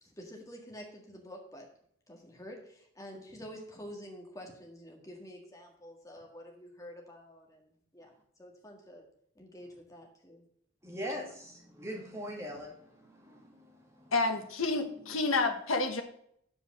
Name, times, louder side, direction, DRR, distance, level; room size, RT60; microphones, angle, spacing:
voice 1, 0.0-1.7 2.1-8.1 8.4-9.1 9.4-10.4, equal, 15° left, 0 dB, 1.7 m, -48 dB
voice 2, 10.8-14.1 15.0-15.2, equal, 15° right, -1 dB, 2.0 m, -42 dB
voice 3, 14.1-16.0, left 3 dB, 85° left, 4 dB, 1.1 m, -29 dB
7.7 x 4.9 x 6.1 m, 0.66 s
head